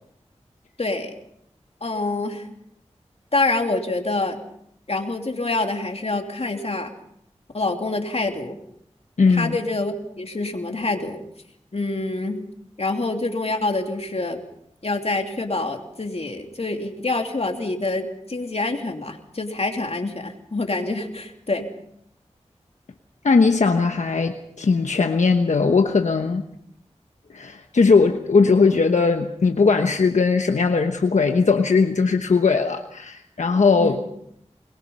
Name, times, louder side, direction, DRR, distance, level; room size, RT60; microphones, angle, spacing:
voice 1, 0.8-1.1 1.8-2.5 3.3-4.4 4.9-6.9 7.5-8.6 9.3-11.2 11.7-12.5 12.8-14.4 14.8-21.7 33.8-34.0, left 2 dB, 60° left, 4 dB, 2.9 m, -26 dB
voice 2, 9.2-9.6 23.2-26.4 27.3-33.9, left 4 dB, 85° left, 5 dB, 1.2 m, -19 dB
22.5 x 21.5 x 5.6 m, 0.73 s
cardioid pair, 40°, 12 cm